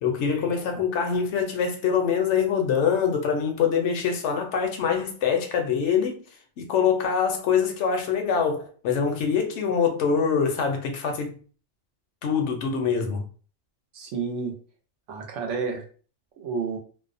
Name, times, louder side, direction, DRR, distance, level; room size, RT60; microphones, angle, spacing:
voice 1, 0.0-6.2 6.6-11.4 12.2-13.2, left 6 dB, 75° left, 0.9 m, -24 dB
voice 2, 13.9-14.6 15.1-15.8 16.4-16.8, right 5 dB, 80° right, 1.0 m, -30 dB
2.6 x 2.0 x 2.5 m
omnidirectional pair, 1.2 m